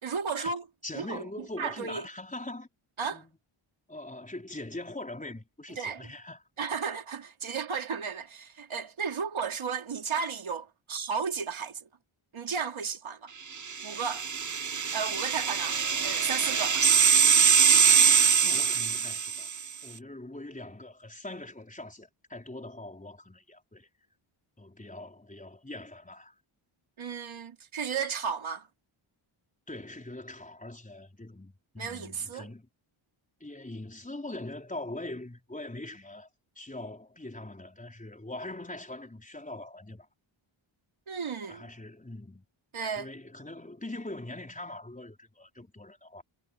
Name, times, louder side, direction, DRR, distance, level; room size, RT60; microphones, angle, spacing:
voice 1, 0.0-0.6 0.9-1.3 1.6-2.0 3.0-3.2 5.8-6.0 6.6-11.8 12.3-13.3 13.8-14.2 14.9-16.8 27.0-28.7 31.8-32.5 41.1-41.7 42.7-43.1, right 6 dB, 70° right, 3.2 m, -34 dB
voice 2, 0.8-2.7 3.1-3.4 3.9-6.4 18.4-19.5 19.8-23.9 24.6-26.3 29.7-32.7 33.4-36.3 36.5-40.1 41.4-42.4 42.9-46.2, left 2 dB, 15° left, 4.8 m, -42 dB
sound 1, 13.7-19.6, right 6 dB, 35° right, 1.0 m, -23 dB
wide cardioid pair, 125°, 50 cm